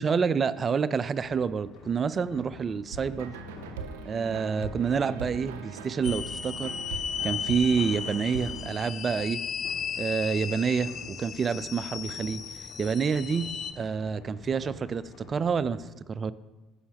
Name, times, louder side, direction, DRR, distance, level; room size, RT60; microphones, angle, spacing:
voice 1, 0.0-3.3 4.0-6.7 7.2-9.4 10.0-12.4 12.8-13.5 13.8-16.3, right 6 dB, 40° right, 16 dB, 0.4 m, -28 dB
sound 1, 1.2-15.8, left 3 dB, 70° left, 1.8 m, -48 dB
sound 2, 2.9-8.8, right 5 dB, 85° right, 0.7 m, -40 dB
sound 3, 6.0-13.7, left 7 dB, 45° left, 0.6 m, -35 dB
15.0 x 5.7 x 2.9 m, 1.1 s
hypercardioid pair, 70°, 0 cm